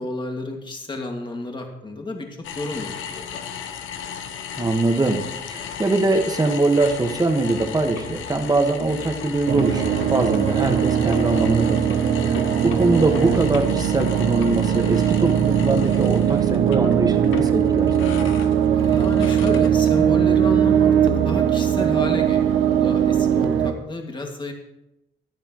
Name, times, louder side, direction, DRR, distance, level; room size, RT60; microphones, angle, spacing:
voice 1, 0.0-3.4 18.7-24.5, left 2 dB, 25° left, 2 dB, 2.2 m, -31 dB
sound 1, 2.4-20.2, left 7 dB, 85° left, 0.9 m, -35 dB
voice 2, 4.6-5.2 5.5-18.3, right 2 dB, 20° right, 4 dB, 1.6 m, -22 dB
sound 2, 9.5-23.7, right 9 dB, 85° right, 0.9 m, -20 dB
15.5 x 11.0 x 3.1 m, 0.89 s
cardioid pair, 90°, 20 cm